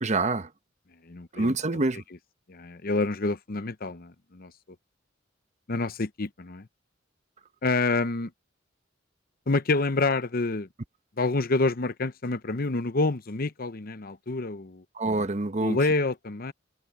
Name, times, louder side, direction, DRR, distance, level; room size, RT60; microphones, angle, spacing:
voice 1, 0.0-0.5 1.3-2.0 15.0-15.8, right 2 dB, 40° right, 0.9 m, -26 dB
voice 2, 1.0-1.6 2.5-4.5 5.7-6.7 7.6-8.3 9.5-10.7 11.2-14.8 15.6-16.5, left 3 dB, 50° left, 0.8 m, -27 dB
head